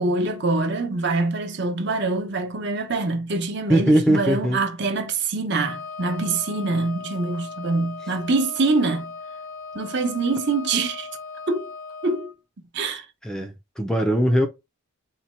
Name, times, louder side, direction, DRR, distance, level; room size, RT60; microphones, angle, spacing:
voice 1, 0.0-9.1 9.7-11.1 11.5-11.7 12.0-12.3 12.7-13.1 14.3-14.4, right 3 dB, 55° right, 0.8 m, -24 dB
voice 2, 3.7-4.6 13.2-14.5, right 1 dB, 5° left, 0.4 m, -20 dB
Wind instrument woodwind instrument, 5.6-12.3, left 4 dB, 80° left, 0.7 m, -38 dB
4.2 x 2.2 x 4.2 m
head